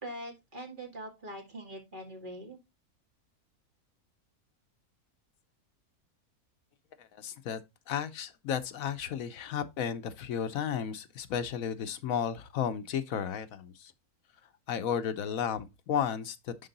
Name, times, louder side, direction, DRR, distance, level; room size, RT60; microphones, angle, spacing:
voice 1, 0.0-2.6, right 1 dB, 35° right, 2.1 m, -43 dB
voice 2, 7.0-7.6 7.9-13.9 14.7-16.7, left 8 dB, 70° left, 1.1 m, -33 dB
10.5 x 3.8 x 4.0 m
omnidirectional pair, 1.6 m